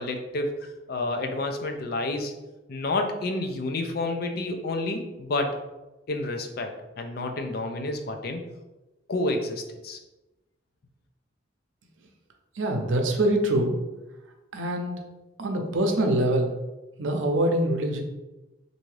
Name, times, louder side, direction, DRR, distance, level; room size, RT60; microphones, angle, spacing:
voice 1, 0.0-2.3 2.7-5.6 6.1-8.4 9.1-10.0, left 2 dB, 55° left, 4 dB, 0.4 m, -29 dB
voice 2, 12.5-13.8 14.5-15.0 15.4-16.5 17.0-18.0, right 1 dB, 90° right, 3 dB, 0.6 m, -24 dB
3.4 x 2.6 x 3.2 m, 1.0 s
head